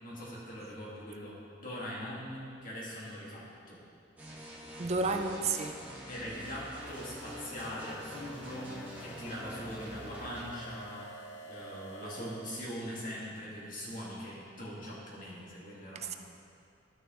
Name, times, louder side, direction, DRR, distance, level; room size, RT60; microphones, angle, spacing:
voice 1, 0.0-3.8 6.1-11.1 11.5-16.2, equal, 50° left, -6 dB, 2.1 m, -42 dB
sound 1, 4.2-10.5, equal, 10° right, 1.3 m, -46 dB
voice 2, 4.8-5.7 16.0-16.1, right 3 dB, 35° right, 6 dB, 0.5 m, -31 dB
sound 2, 6.3-12.5, right 1 dB, 70° left, 0.9 m, -50 dB
12.5 x 6.3 x 3.1 m, 2.5 s
head